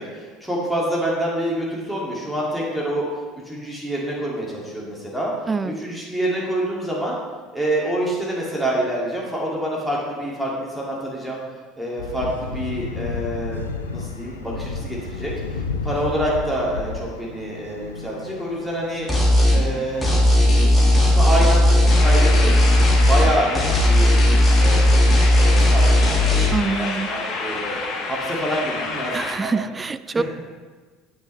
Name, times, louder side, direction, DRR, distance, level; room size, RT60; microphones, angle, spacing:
voice 1, 0.0-3.1 3.5-5.3 5.6-7.2 7.5-11.4 11.8-19.1 19.5-20.2 20.8-22.5 23.1-24.2 24.6-27.8 28.1-29.6 30.1-30.2, right 1 dB, ahead, -5 dB, 2.5 m, -27 dB
sound 1, 12.0-25.3, left 4 dB, 80° left, 0.6 m, -34 dB
sound 2, 19.1-19.6 20.0-23.3 23.5-26.5, left 1 dB, 15° left, 2.3 m, -15 dB
sound 3, 21.9-29.4, left 3 dB, 45° left, 1.5 m, -29 dB
voice 2, 26.5-27.1 29.1-30.2, right 4 dB, 20° right, 14 dB, 0.4 m, -25 dB
8.4 x 8.1 x 3.4 m, 1.4 s
figure-of-eight pair, 65°, 0 cm